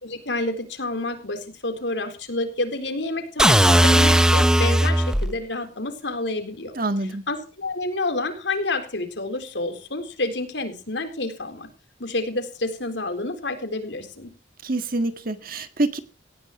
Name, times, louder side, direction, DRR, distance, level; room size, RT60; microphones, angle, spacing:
voice 1, 0.0-6.7 7.3-11.7 12.0-14.3, left 2 dB, 75° left, 7 dB, 4.1 m, -29 dB
sound 1, 3.4-5.3, right 1 dB, 5° right, 0.8 m, -17 dB
voice 2, 6.8-7.2 14.6-16.0, right 2 dB, 50° right, 9 dB, 1.8 m, -26 dB
18.5 x 16.0 x 3.2 m, 0.35 s
head